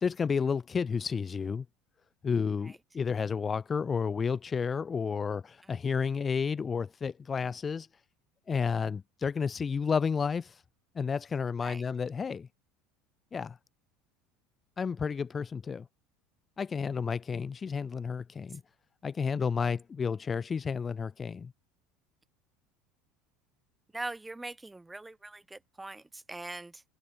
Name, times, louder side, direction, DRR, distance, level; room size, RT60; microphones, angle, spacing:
voice 1, 0.0-1.6 2.2-7.9 8.5-10.6 11.0-12.5 13.3-13.6 14.8-15.9 16.6-18.6 19.0-21.5, left 6 dB, 25° left, 0.4 m, -31 dB
voice 2, 23.9-26.8, right 2 dB, 10° right, 1.6 m, -42 dB
supercardioid pair, 130°, 0 cm